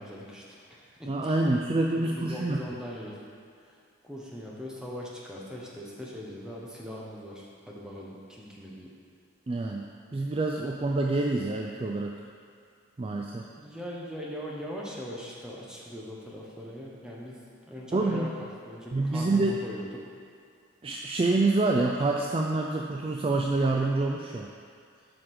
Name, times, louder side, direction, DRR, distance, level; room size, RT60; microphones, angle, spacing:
voice 1, 0.0-1.6 1.9-3.2 3.6-3.8 4.0-8.9 13.6-17.4 17.7-19.9, equal, 5° right, -4 dB, 1.1 m, -40 dB
voice 2, 1.1-2.6 9.5-9.9 10.1-12.1 13.0-13.4 17.9-18.3 18.9-19.6 20.8-24.5, right 2 dB, 25° right, 0 dB, 0.3 m, -27 dB
7.8 x 5.1 x 6.1 m, 2.3 s
head